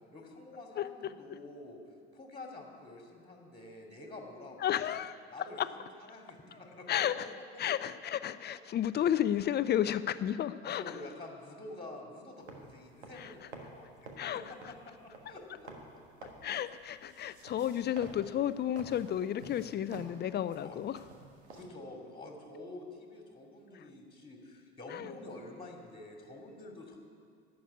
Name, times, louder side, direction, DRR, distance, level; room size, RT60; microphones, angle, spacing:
voice 1, 0.1-1.8 2.1-5.0 5.3-6.9 7.2-7.3 7.5-7.6 10.6-13.9 14.3-15.7 16.4-16.5 20.6-20.9 21.5-27.0, left 2 dB, 15° left, 1 dB, 2.5 m, -48 dB
voice 2, 0.8-1.1 4.6-5.2 5.6-5.7 6.9-7.3 7.6-11.0 13.1-13.3 14.2-14.7 16.4-21.0 24.9-25.1, left 10 dB, 30° left, 14 dB, 0.5 m, -32 dB
sound 1, 12.4-21.7, right 3 dB, 80° right, 1.5 m, -52 dB
11.5 x 8.0 x 9.3 m, 2.2 s
figure-of-eight pair, 65°, 33 cm